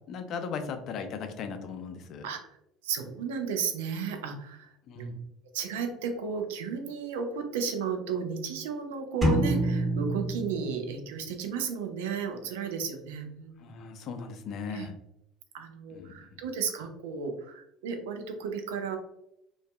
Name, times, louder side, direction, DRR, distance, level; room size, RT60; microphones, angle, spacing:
voice 1, 0.1-2.3 4.9-5.1 13.6-14.9 15.9-16.4, left 5 dB, 55° left, 7 dB, 0.4 m, -38 dB
voice 2, 2.8-5.2 5.5-13.7 14.7-14.9 15.5-19.0, right 6 dB, 80° right, 5 dB, 0.4 m, -34 dB
sound 1, 9.2-11.2, right 1 dB, 15° right, 1.2 m, -27 dB
2.5 x 2.3 x 2.2 m, 0.82 s
hypercardioid pair, 70°, 0 cm